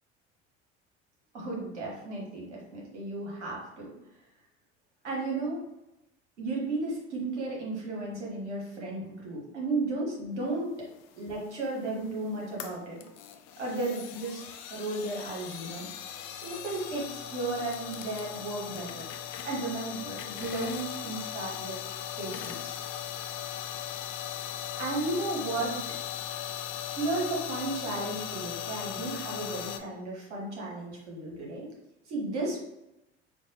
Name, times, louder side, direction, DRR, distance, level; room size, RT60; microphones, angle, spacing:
voice 1, 1.3-3.9 5.0-5.6 6.4-10.7 11.2-13.0 13.6-15.9 16.4-19.0 19.4-21.8 22.2-22.8 24.8-25.8 26.3-26.4 26.9-31.7 32.1-32.6, right 2 dB, 85° right, -3 dB, 1.1 m, -34 dB
sound 1, 11.0-29.8, left 9 dB, 50° left, 0.5 m, -38 dB
4.5 x 2.2 x 2.8 m, 0.91 s
hypercardioid pair, 60°, 34 cm